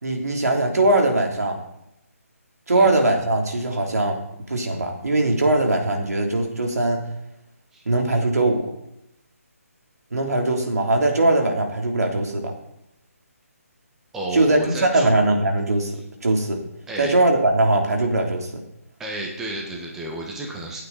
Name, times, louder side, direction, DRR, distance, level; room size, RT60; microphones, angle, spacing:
voice 1, 0.0-1.6 2.7-4.2 4.5-7.0 7.8-8.7 10.1-12.5 14.3-15.9 16.2-16.6 17.0-18.5, right 2 dB, 80° right, 2 dB, 3.4 m, -20 dB
voice 2, 14.1-15.1 16.9-17.1 19.0-20.8, right 1 dB, 5° right, -1 dB, 1.5 m, -31 dB
17.0 x 8.9 x 4.2 m, 0.84 s
hypercardioid pair, 165°, 8 cm